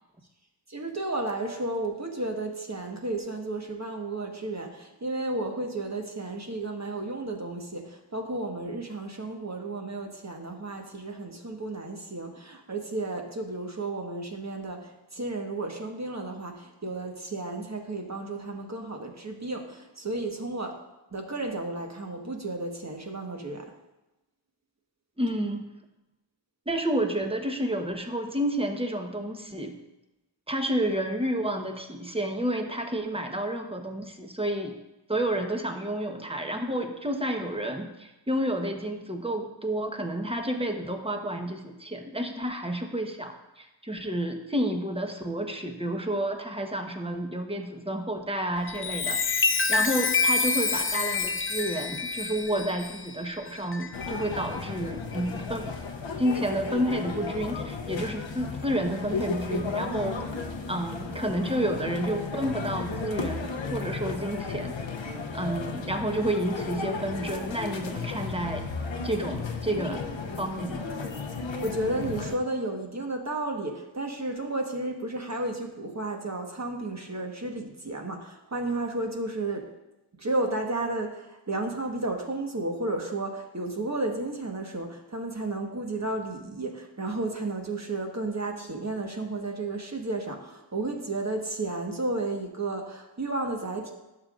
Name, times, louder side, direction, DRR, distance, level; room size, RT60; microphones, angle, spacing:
voice 1, 0.7-20.8 21.1-23.7 71.6-79.7 80.2-93.9, right 2 dB, 40° right, 2 dB, 1.4 m, -33 dB
voice 2, 25.2-25.6 26.7-29.8 30.5-34.7 35.1-55.7 56.2-60.2 60.7-64.8 65.3-68.6 69.0-70.0 70.4-70.9, right 1 dB, 15° right, 4 dB, 1.1 m, -30 dB
Chime, 48.6-54.6 55.1-55.4, left 4 dB, 30° left, 0.5 m, -28 dB
sound 1, 53.9-72.4, left 4 dB, 90° left, 0.8 m, -34 dB
11.5 x 6.8 x 2.5 m, 0.99 s
cardioid pair, 45°, 44 cm